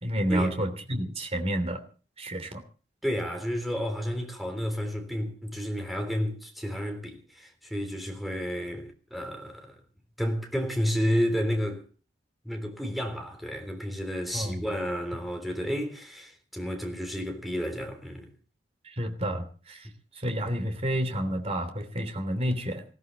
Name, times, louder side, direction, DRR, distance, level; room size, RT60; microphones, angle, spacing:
voice 1, 0.0-1.8 2.2-2.6 14.3-14.6 19.0-19.9 20.2-22.8, equal, 35° right, 3.1 m, -30 dB
voice 2, 3.0-9.8 10.2-11.8 12.4-18.3, equal, ahead, 3.5 m, -31 dB
20.5 x 16.0 x 4.1 m
head